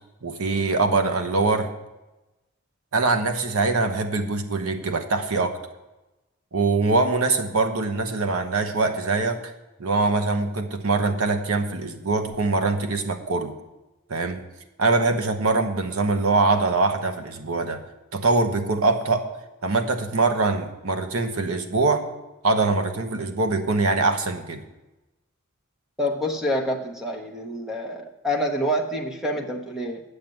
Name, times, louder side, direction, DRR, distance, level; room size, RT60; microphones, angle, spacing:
voice 1, 0.2-1.7 2.9-5.6 6.5-9.5 9.8-13.6 14.1-14.4 14.8-17.8 18.1-19.3 19.6-22.1 22.4-24.6, right 3 dB, 75° right, 6 dB, 1.0 m, -23 dB
voice 2, 26.0-30.0, equal, ahead, 3 dB, 0.8 m, -27 dB
8.9 x 6.6 x 7.6 m, 1.0 s
head